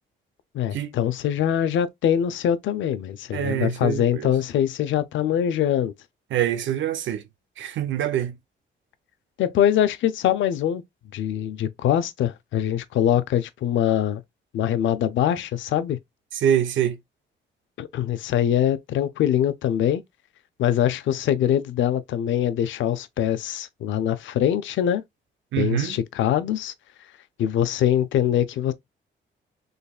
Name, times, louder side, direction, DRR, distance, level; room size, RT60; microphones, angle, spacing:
voice 1, 0.5-5.9 9.4-10.8 11.1-14.2 14.5-16.0 17.8-20.0 20.6-25.0 25.6-26.7 27.4-28.7, left 10 dB, 75° left, 0.6 m, -23 dB
voice 2, 3.3-4.3 6.3-7.2 7.6-8.3 16.3-17.0 25.5-26.0, right 10 dB, 75° right, 0.8 m, -25 dB
4.0 x 3.2 x 2.3 m
cardioid pair, 90°, 20 cm